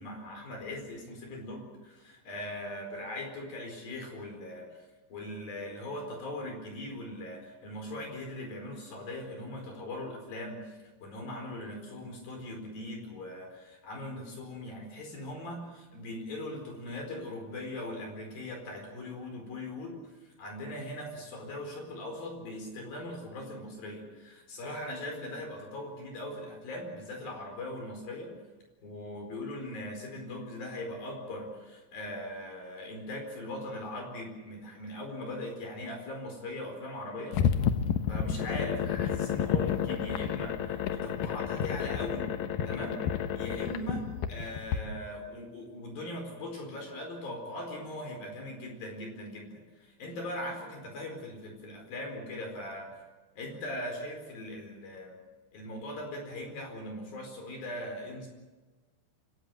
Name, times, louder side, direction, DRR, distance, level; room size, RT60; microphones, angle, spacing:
voice 1, 0.0-28.4 28.8-37.5 38.1-42.3 42.6-43.0 43.3-52.9 53.4-55.2 55.5-58.3, left 1 dB, 50° left, 3 dB, 6.0 m, -40 dB
sound 1, 37.3-44.8, left 8 dB, 85° left, 2.0 m, -30 dB
26.5 x 16.5 x 7.8 m, 1.2 s
omnidirectional pair, 5.6 m